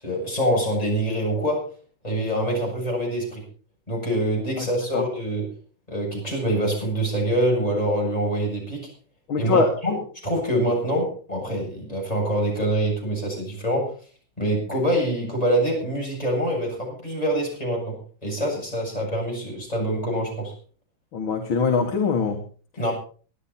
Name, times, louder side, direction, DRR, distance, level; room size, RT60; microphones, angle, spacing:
voice 1, 0.0-1.7 2.0-3.4 3.9-5.5 5.9-8.9 9.4-13.9 14.4-20.5 22.8-22.9, right 1 dB, 15° left, -1 dB, 7.8 m, -25 dB
voice 2, 9.3-9.7 21.1-22.4, left 5 dB, 70° left, 2 dB, 2.5 m, -22 dB
24.0 x 10.0 x 4.3 m, 0.40 s
omnidirectional pair, 2.3 m